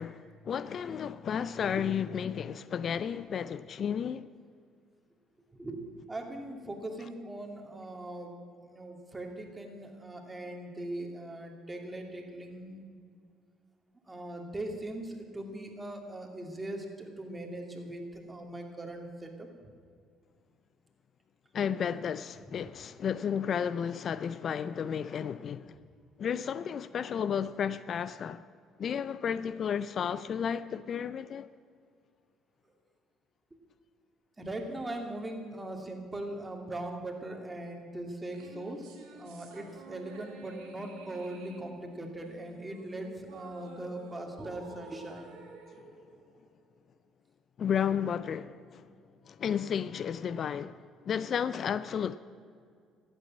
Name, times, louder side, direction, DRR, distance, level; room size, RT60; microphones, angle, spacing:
voice 1, 0.0-4.3 21.5-25.8 26.2-28.4 28.8-31.5 47.6-48.9 49.3-52.2, left 8 dB, 50° left, 0.4 m, -33 dB
voice 2, 5.5-5.8 6.1-8.3 8.6-13.0 14.0-19.5 34.4-45.3, right 1 dB, 20° right, 2.7 m, -40 dB
sound 1, 38.3-46.9, right 3 dB, 80° right, 2.5 m, -51 dB
13.0 x 8.9 x 7.6 m
hypercardioid pair, 60°, 0 cm